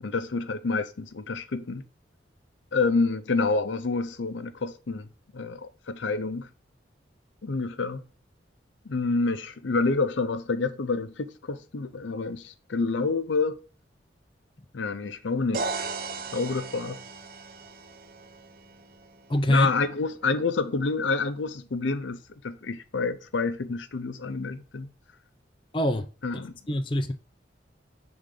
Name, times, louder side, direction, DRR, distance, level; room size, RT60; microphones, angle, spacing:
voice 1, 0.0-1.8 2.7-5.1 5.3-6.5 7.4-8.0 8.9-13.6 14.7-15.6 16.3-17.0 19.5-24.9 26.2-26.5, left 4 dB, 80° left, 0.6 m, -28 dB
sound 1, 15.5-19.4, right 4 dB, 50° right, 0.7 m, -36 dB
voice 2, 19.3-19.7 25.7-26.1 26.7-27.1, left 1 dB, 25° left, 0.5 m, -24 dB
6.6 x 3.9 x 3.8 m
head